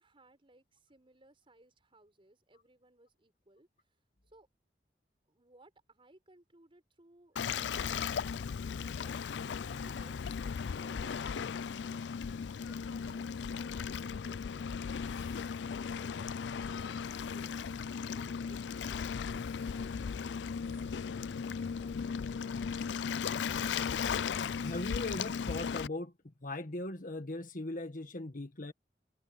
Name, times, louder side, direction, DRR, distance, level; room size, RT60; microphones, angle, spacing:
voice 1, 0.0-3.7 4.3-4.5 5.3-8.4 8.7-12.2 12.7-17.6 18.1-23.4, right 1 dB, 30° right, 5.6 m, -63 dB
Waves surf, 7.4-25.9, left 6 dB, 75° left, 0.4 m, -36 dB
voice 2, 24.6-26.1 26.4-28.7, left 2 dB, 50° left, 1.6 m, -39 dB
head